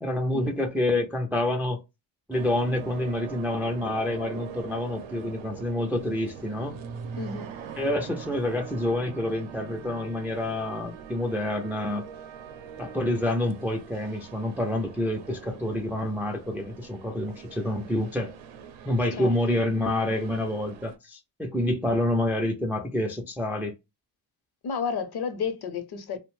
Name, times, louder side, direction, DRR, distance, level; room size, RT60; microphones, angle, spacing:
voice 1, 0.0-1.8 2.3-6.8 7.8-12.1 12.8-18.3 18.9-23.7, left 1 dB, 5° right, 0.3 m, -28 dB
sound 1, 2.3-21.0, right 7 dB, 80° right, 0.6 m, -42 dB
voice 2, 7.2-7.6 19.2-19.6 24.6-26.2, left 6 dB, 55° left, 0.7 m, -32 dB
2.6 x 2.1 x 3.0 m
cardioid pair, 110°, 46 cm